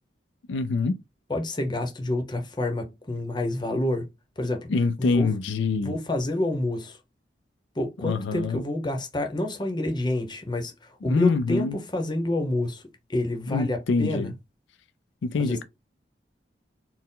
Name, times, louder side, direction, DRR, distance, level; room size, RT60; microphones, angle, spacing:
voice 1, 0.5-1.0 4.7-5.9 8.0-8.6 11.0-11.8 13.5-14.3 15.2-15.6, left 4 dB, 85° left, 0.4 m, -25 dB
voice 2, 1.3-4.1 4.4-4.7 5.0-5.3 5.8-7.0 7.7-12.8 13.1-14.3 15.4-15.6, left 1 dB, 25° left, 0.8 m, -28 dB
4.3 x 2.1 x 3.7 m
head